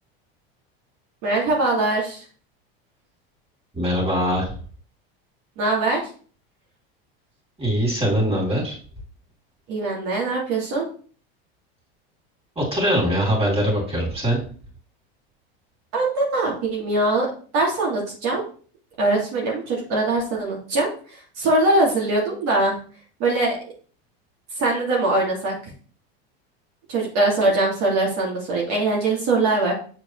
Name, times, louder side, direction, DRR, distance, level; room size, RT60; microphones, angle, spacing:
voice 1, 1.2-2.2 5.6-6.0 9.7-10.9 15.9-17.3 17.5-18.4 19.0-22.8 23.2-23.6 24.6-25.6 26.9-29.7, right 2 dB, 60° right, -2 dB, 2.4 m, -22 dB
voice 2, 3.7-4.5 7.6-8.8 12.6-14.4, equal, 20° right, -2 dB, 3.6 m, -22 dB
7.3 x 4.6 x 3.2 m, 0.43 s
supercardioid pair, 115°, 31 cm